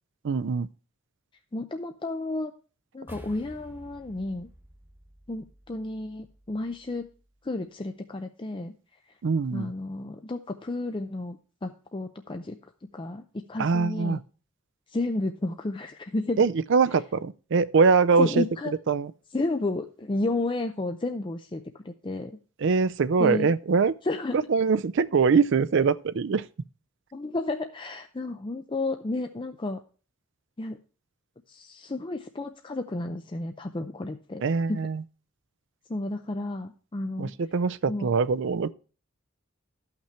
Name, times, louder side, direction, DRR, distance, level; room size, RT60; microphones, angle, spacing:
voice 1, 0.2-0.7 9.2-9.7 13.6-14.2 16.4-18.4 18.9-19.1 22.6-23.9 24.5-26.4 34.4-35.0 37.2-38.7, right 5 dB, 60° right, 0.4 m, -23 dB
voice 2, 1.5-2.5 2.9-4.5 5.3-7.1 7.4-8.7 9.1-9.2 9.5-12.6 12.9-14.2 14.9-16.4 16.9-17.0 18.2-18.7 19.3-22.4 23.2-23.5 24.0-24.4 27.1-29.8 30.6-30.8 31.5-34.9 35.9-37.3 37.9-38.1, left 2 dB, 25° left, 0.5 m, -32 dB
sound 1, 3.1-7.6, equal, 10° right, 2.5 m, -51 dB
13.0 x 5.9 x 4.4 m
head